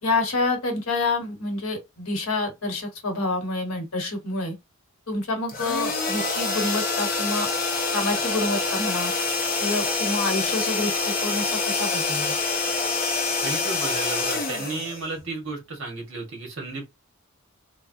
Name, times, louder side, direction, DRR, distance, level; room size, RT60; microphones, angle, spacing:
voice 1, 0.0-4.5 5.1-7.5 7.9-9.1 9.6-12.4, left 2 dB, 75° left, 1.1 m, -28 dB
sound 1, 5.5-15.5, left 4 dB, 40° left, 0.6 m, -26 dB
voice 2, 13.4-16.8, right 3 dB, 60° right, 1.3 m, -33 dB
3.3 x 2.1 x 2.6 m
head